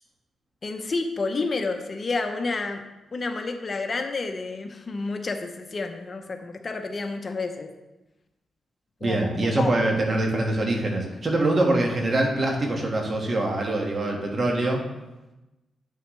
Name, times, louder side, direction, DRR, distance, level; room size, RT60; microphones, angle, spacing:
voice 1, 0.6-2.8 3.1-7.7 9.0-9.7, left 3 dB, 40° left, 6 dB, 0.7 m, -30 dB
voice 2, 9.0-14.8, right 1 dB, 45° right, 1 dB, 1.7 m, -24 dB
9.1 x 6.4 x 3.3 m, 1.0 s
cardioid pair, 80°, 0 cm